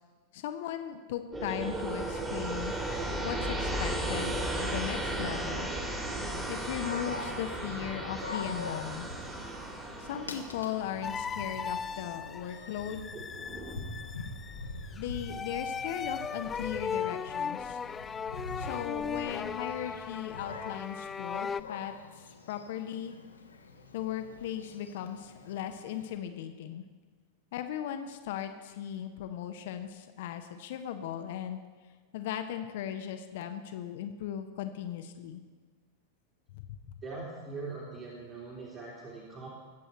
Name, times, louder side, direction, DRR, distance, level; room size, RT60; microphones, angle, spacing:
voice 1, 0.3-2.8 3.2-5.7 6.5-9.1 10.0-13.1 15.0-17.8 18.6-23.2 23.9-26.8 27.5-31.6 32.1-35.4 36.5-36.6, left 10 dB, 55° left, 7 dB, 0.9 m, -37 dB
sound 1, 1.3-12.0 13.1-13.7, right 1 dB, 15° right, 2.3 m, -35 dB
Dog, 6.6-26.2, left 3 dB, 75° left, 1.2 m, -45 dB
sound 2, 11.0-21.6, left 6 dB, 20° left, 0.3 m, -37 dB
voice 2, 37.0-39.5, right 3 dB, 35° right, -6 dB, 3.1 m, -41 dB
21.5 x 7.8 x 4.4 m, 1.4 s
figure-of-eight pair, 90°, 0 cm